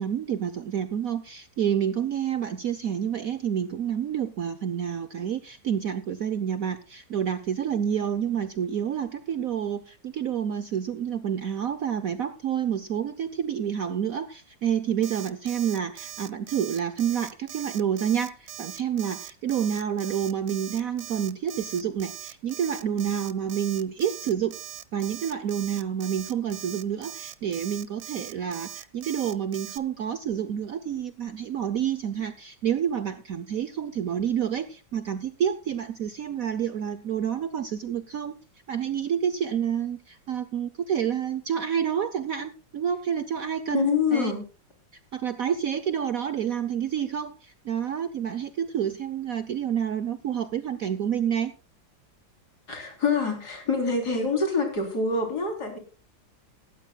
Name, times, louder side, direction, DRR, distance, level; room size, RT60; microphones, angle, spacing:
voice 1, 0.0-24.6 24.9-38.4 38.7-44.3 45.1-51.5, right 8 dB, 60° right, 12 dB, 0.9 m, -29 dB
Alarm, 15.0-29.8, right 12 dB, 80° right, 1.5 m, -41 dB
voice 2, 43.7-44.4 52.7-55.8, left 4 dB, 55° left, 3 dB, 4.0 m, -26 dB
18.0 x 13.0 x 2.2 m, 0.34 s
omnidirectional pair, 2.1 m